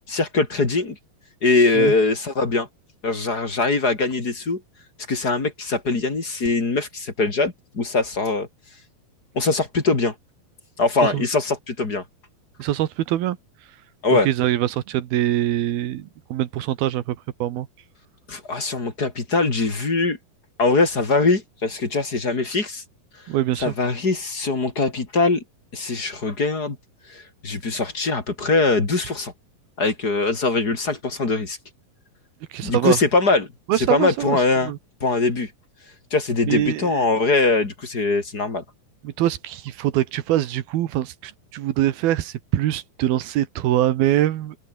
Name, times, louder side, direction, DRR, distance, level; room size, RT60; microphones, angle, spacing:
voice 1, 0.1-1.0 1.4-2.7 3.0-4.6 5.1-8.5 9.3-10.1 10.8-12.0 14.0-14.3 18.3-20.2 20.6-22.8 23.6-25.4 25.7-26.8 27.1-29.3 29.8-31.6 32.6-33.5 33.9-34.7 35.0-35.5 36.1-38.6, left 3 dB, 25° left, 3.5 m, -22 dB
voice 2, 12.6-13.4 14.1-17.7 23.3-23.7 32.5-33.0 33.7-34.8 36.5-37.0 39.0-44.6, right 13 dB, 85° right, 3.3 m, -23 dB
omnidirectional pair, 4.2 m